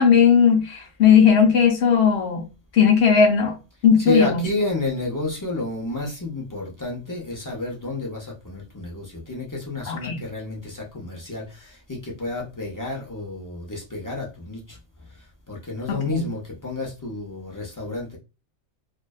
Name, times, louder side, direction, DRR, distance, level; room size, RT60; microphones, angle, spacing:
voice 1, 0.0-2.4 2.7-3.6 3.8-4.5 9.9-10.2 15.9-16.3, left 7 dB, 65° left, 0.8 m, -17 dB
voice 2, 4.0-14.8 15.5-18.2, left 2 dB, 30° left, 0.3 m, -30 dB
2.5 x 2.2 x 2.3 m
omnidirectional pair, 1.3 m